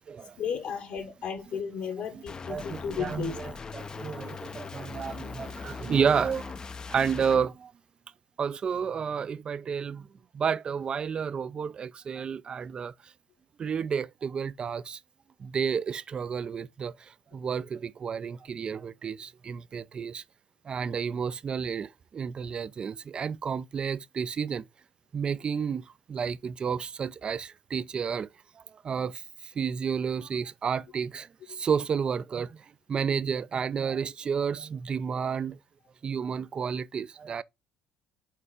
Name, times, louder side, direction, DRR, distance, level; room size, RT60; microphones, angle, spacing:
voice 1, 0.4-3.4, left 7 dB, 65° left, 1.2 m, -34 dB
sound 1, 2.3-7.4, left 5 dB, 30° left, 0.4 m, -40 dB
voice 2, 2.5-6.5 6.9-7.7 8.4-10.1 10.3-12.9 13.6-15.0 15.4-16.9 17.3-20.2 20.7-24.6 25.1-28.3 28.8-29.2 29.6-32.6 32.9-35.6 36.0-37.4, right 6 dB, 35° right, 0.4 m, -31 dB
4.6 x 4.3 x 4.8 m
cardioid pair, 100°, 3 cm